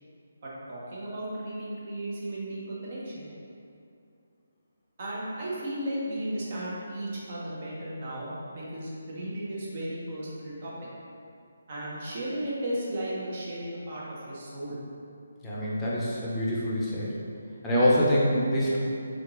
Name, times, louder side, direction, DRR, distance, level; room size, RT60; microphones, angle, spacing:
voice 1, 0.4-3.3 5.0-10.7 11.7-14.8, right 1 dB, 45° right, -7 dB, 1.0 m, -35 dB
voice 2, 15.4-17.1 17.6-18.8, equal, 10° left, -8 dB, 0.7 m, -25 dB
3.8 x 3.3 x 3.0 m, 2.5 s
figure-of-eight pair, 150°, 0 cm